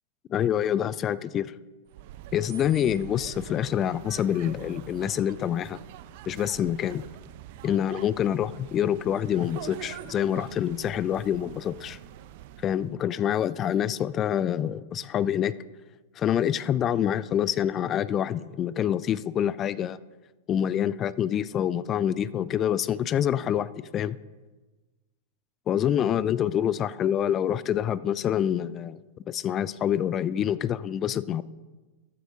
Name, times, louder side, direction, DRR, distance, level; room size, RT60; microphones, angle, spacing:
voice 1, 0.3-1.5 2.3-5.8 6.3-7.0 7.6-12.0 12.6-15.5 16.2-20.0 20.5-24.2 25.7-29.0 29.3-31.4, left 10 dB, 30° left, 18 dB, 0.3 m, -26 dB
sound 1, 1.9-13.0, right 12 dB, 55° right, 0.5 m, -44 dB
14.0 x 9.1 x 2.7 m, 1.2 s
hypercardioid pair, 100°, 0 cm